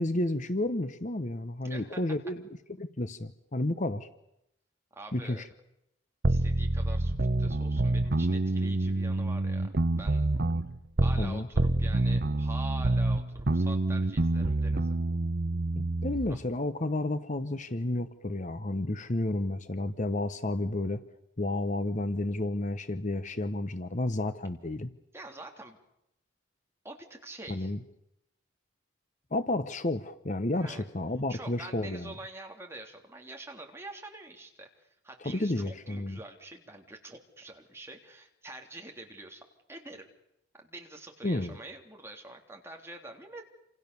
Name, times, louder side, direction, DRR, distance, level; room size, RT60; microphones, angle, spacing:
voice 1, 0.0-2.4 2.8-4.1 5.1-5.4 11.2-11.5 15.8-21.0 21.4-24.9 27.5-27.8 29.3-32.1 35.2-36.2 41.2-41.5, left 1 dB, 40° left, 11 dB, 1.0 m, -31 dB
voice 2, 1.6-2.0 4.9-5.5 6.3-10.2 11.0-15.0 16.3-16.4 25.1-25.8 26.8-27.7 30.5-30.8 31.3-40.1 40.5-43.5, right 2 dB, 15° right, 2 dB, 3.4 m, -46 dB
sound 1, 6.2-11.3 11.6-16.3, right 2 dB, 50° right, 1.0 m, -27 dB
28.0 x 27.5 x 7.1 m, 0.82 s
head